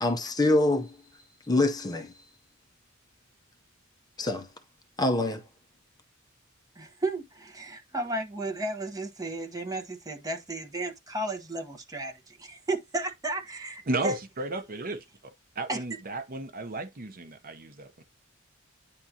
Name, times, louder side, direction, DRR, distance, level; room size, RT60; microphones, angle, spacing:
voice 1, 0.0-2.3 4.2-4.5 5.0-5.4, left 2 dB, 20° left, 0.7 m, -26 dB
voice 2, 6.8-14.2 15.7-15.8, right 2 dB, 15° right, 1.1 m, -33 dB
voice 3, 13.9-15.0 15.5-18.0, right 2 dB, 45° right, 0.9 m, -34 dB
9.6 x 3.7 x 2.8 m
head